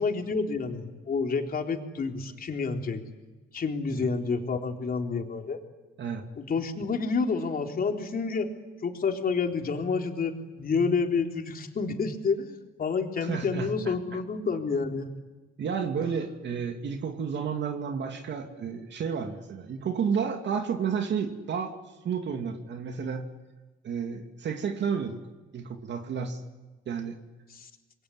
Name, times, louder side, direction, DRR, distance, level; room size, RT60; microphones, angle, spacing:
voice 1, 0.0-3.0 3.5-5.6 6.4-8.5 8.8-15.1 27.5-27.7, left 4 dB, 45° left, 3 dB, 3.8 m, -29 dB
voice 2, 13.2-13.9 15.6-21.8 22.0-23.3 23.8-25.2 25.5-26.4 26.9-27.2, right 6 dB, 65° right, 5 dB, 2.6 m, -31 dB
28.0 x 22.0 x 9.8 m, 1.2 s
cardioid pair, 90°, 20 cm